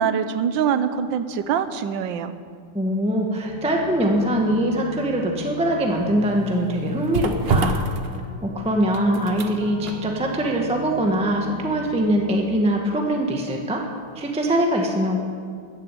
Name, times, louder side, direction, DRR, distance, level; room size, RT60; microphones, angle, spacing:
voice 1, 0.0-2.3, right 7 dB, 65° right, 11 dB, 1.4 m, -23 dB
voice 2, 2.7-7.8 8.4-13.8 14.1-15.2, right 1 dB, 5° right, 1 dB, 1.1 m, -22 dB
sound 1, 3.4-12.5, left 6 dB, 55° left, 3.1 m, -38 dB
sound 2, 5.9-13.8 14.2-14.3, right 3 dB, 85° right, 0.5 m, -30 dB
14.0 x 9.8 x 8.4 m, 2.1 s
omnidirectional pair, 2.4 m